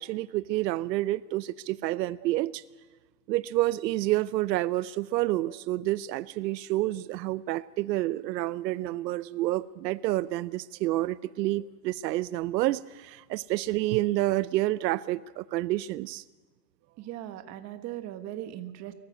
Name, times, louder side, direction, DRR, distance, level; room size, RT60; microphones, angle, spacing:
voice 1, 0.0-2.6 3.3-16.2, right 16 dB, 85° right, 17 dB, 0.7 m, -29 dB
voice 2, 16.9-18.9, right 13 dB, 30° right, 9 dB, 1.4 m, -39 dB
23.5 x 14.0 x 9.3 m, 1.3 s
supercardioid pair, 150°, 50 cm